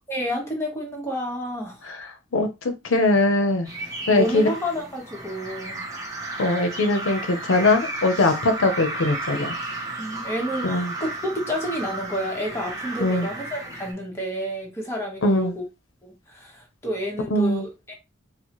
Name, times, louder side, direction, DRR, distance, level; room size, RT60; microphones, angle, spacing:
voice 1, 0.1-1.8 4.1-5.8 10.0-15.6 16.0-17.9, equal, 15° left, 1.1 m, -30 dB
voice 2, 2.8-3.7 4.1-4.5 6.4-9.6 10.6-10.9 13.0-13.3 15.2-15.5 17.3-17.6, left 2 dB, 90° left, 0.7 m, -21 dB
sound 1, 3.6-13.9, right 2 dB, 15° right, 0.8 m, -33 dB
4.4 x 2.1 x 2.9 m
head